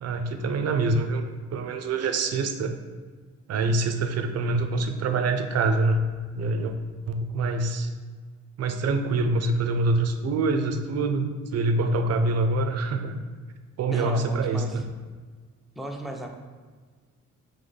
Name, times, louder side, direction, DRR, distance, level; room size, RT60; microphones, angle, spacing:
voice 1, 0.0-1.2 1.5-2.8 3.5-6.0 6.4-6.7 7.1-7.9 8.6-13.1 13.8-14.8, right 3 dB, 55° right, 7 dB, 0.5 m, -25 dB
voice 2, 13.9-14.8 15.8-16.4, right 1 dB, ahead, 2 dB, 0.5 m, -34 dB
3.7 x 3.1 x 3.9 m, 1.5 s
cardioid pair, 90°, 30 cm